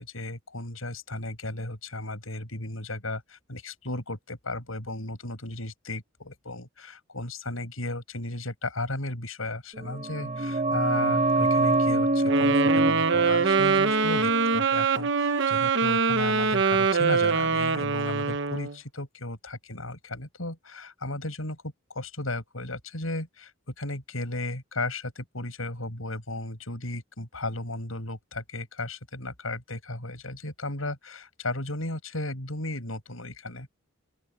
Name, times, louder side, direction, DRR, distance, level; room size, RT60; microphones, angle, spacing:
voice 1, 0.0-33.7, left 2 dB, 80° left, 6.4 m, -35 dB
sound 1, 9.8-15.3 15.5-15.6, right 2 dB, 35° right, 1.1 m, -26 dB
Wind instrument woodwind instrument, 12.3-18.7, right 5 dB, 60° right, 1.1 m, -24 dB
open air
head